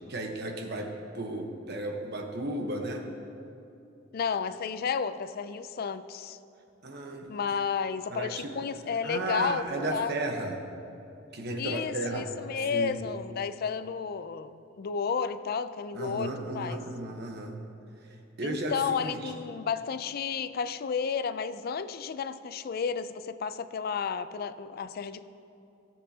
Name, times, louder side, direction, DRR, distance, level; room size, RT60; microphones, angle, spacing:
voice 1, 0.1-3.1 6.8-7.6 8.1-8.5 9.0-10.6 11.3-12.9 15.9-17.6 18.0-19.3, right 2 dB, 55° right, 3 dB, 1.1 m, -34 dB
voice 2, 4.1-6.4 7.3-10.1 11.6-16.8 18.4-25.3, left 6 dB, 50° left, 13 dB, 0.4 m, -32 dB
17.5 x 7.4 x 2.8 m, 2.7 s
head